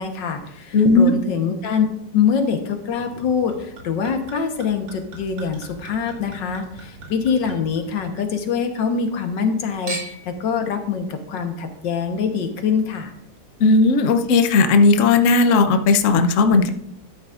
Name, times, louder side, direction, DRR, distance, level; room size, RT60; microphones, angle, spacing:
voice 1, 0.0-1.9 2.1-13.1, left 6 dB, 80° left, 6 dB, 1.8 m, -24 dB
voice 2, 0.7-1.1 13.6-16.7, left 3 dB, 55° left, 7 dB, 0.9 m, -15 dB
Chink clink / Liquid, 3.0-8.5 8.8-9.5 9.9-10.4 11.1-11.2, right 2 dB, 75° right, 3.2 m, -39 dB
13.0 x 9.4 x 2.5 m, 0.76 s
omnidirectional pair, 2.0 m